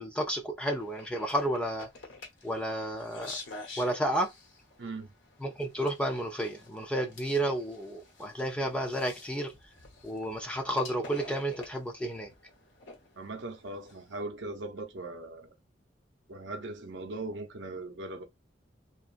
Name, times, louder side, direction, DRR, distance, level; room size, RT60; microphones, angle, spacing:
voice 1, 0.0-1.9 2.4-3.4 3.8-4.3 5.4-9.5 10.0-12.3, right 1 dB, 5° left, 0.4 m, -31 dB
sound 1, 0.7-14.2, left 3 dB, 90° left, 1.0 m, -49 dB
voice 2, 13.2-15.5 16.3-18.2, right 2 dB, 80° right, 0.7 m, -39 dB
2.8 x 2.4 x 2.4 m
head